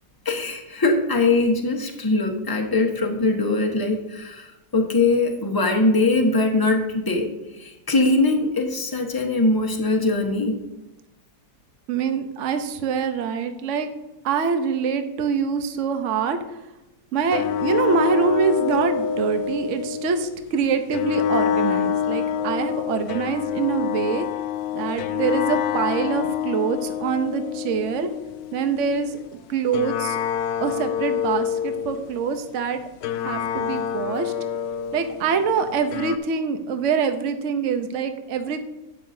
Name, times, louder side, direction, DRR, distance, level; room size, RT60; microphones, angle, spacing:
voice 1, 0.2-10.6, left 2 dB, 15° left, 2 dB, 1.1 m, -22 dB
voice 2, 11.9-13.9 14.2-16.4 17.1-24.3 24.7-28.1 28.5-29.1 29.5-30.2 30.6-32.8 33.1-34.3 34.9-38.6, right 6 dB, 55° right, 8 dB, 1.0 m, -25 dB
sound 1, 17.3-20.3 20.9-29.3 29.7-32.2 33.0-36.2, left 9 dB, 70° left, 1.0 m, -27 dB
11.5 x 8.9 x 2.8 m, 0.98 s
omnidirectional pair, 1.9 m